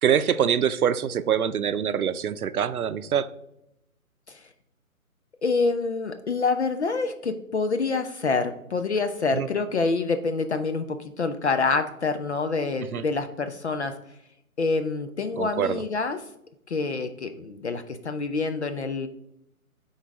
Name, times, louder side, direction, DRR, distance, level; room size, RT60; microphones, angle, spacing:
voice 1, 0.0-3.3 9.3-9.5 12.9-13.0 15.4-15.8, right 8 dB, 85° right, 13 dB, 0.6 m, -24 dB
voice 2, 5.4-13.9 14.6-16.2 16.7-19.1, left 4 dB, 50° left, 8 dB, 0.5 m, -27 dB
9.1 x 3.9 x 3.5 m, 0.80 s
figure-of-eight pair, 150°, 43 cm